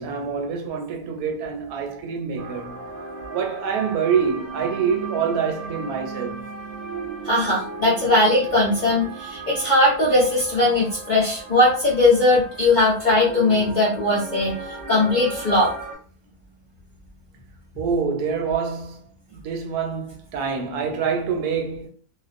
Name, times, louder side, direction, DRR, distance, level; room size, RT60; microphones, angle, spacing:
voice 1, 0.0-2.8 3.3-6.5 17.8-19.1 19.3-21.9, right 6 dB, 85° right, 1.1 m, -26 dB
sound 1, 2.4-15.9, right 3 dB, 50° right, 0.7 m, -36 dB
voice 2, 7.2-15.7, left 2 dB, 55° left, 0.5 m, -19 dB
2.4 x 2.2 x 2.4 m
omnidirectional pair, 1.6 m